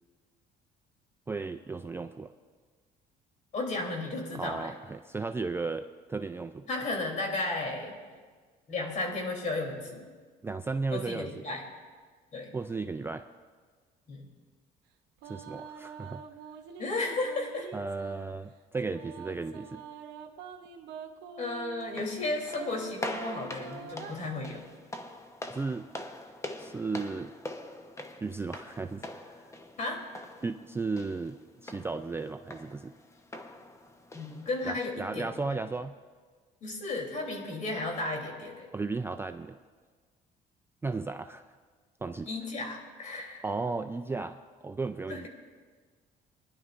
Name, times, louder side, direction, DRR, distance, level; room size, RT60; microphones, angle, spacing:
voice 1, 1.3-2.3 4.3-6.7 10.4-11.4 12.5-13.3 15.2-16.2 17.7-19.8 25.5-25.9 26.6-27.4 28.2-29.6 30.4-32.9 34.6-36.0 38.7-39.6 40.8-41.5 42.0-42.3 43.4-45.3, right 3 dB, 15° right, 8 dB, 0.3 m, -35 dB
voice 2, 3.5-4.7 6.7-8.0 8.7-10.0 10.9-11.6 12.3-12.5 14.1-14.3 16.8-17.7 21.4-24.6 29.8-30.0 34.1-35.3 36.6-38.7 42.2-43.4 45.1-45.3, left 2 dB, 45° left, 0 dB, 3.2 m, -34 dB
sound 1, 15.2-18.3 18.9-22.0 22.4-24.1, right 6 dB, 85° right, 0.9 m, -45 dB
sound 2, 21.8-34.8, left 1 dB, 15° left, 0.9 m, -44 dB
23.0 x 11.0 x 2.5 m, 1.5 s
cardioid pair, 110°, 17 cm